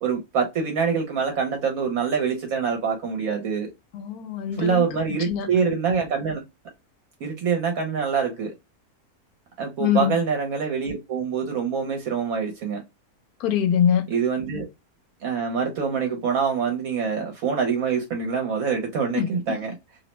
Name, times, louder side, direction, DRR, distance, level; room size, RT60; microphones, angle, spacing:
voice 1, 0.0-3.7 4.6-6.4 7.2-8.5 9.6-12.8 14.1-14.7 15.2-19.7, right 6 dB, 70° right, 1.1 m, -25 dB
voice 2, 3.9-5.5 9.8-10.1 13.4-14.1 19.1-19.5, left 9 dB, 85° left, 1.1 m, -24 dB
2.7 x 2.1 x 2.9 m
omnidirectional pair, 1.5 m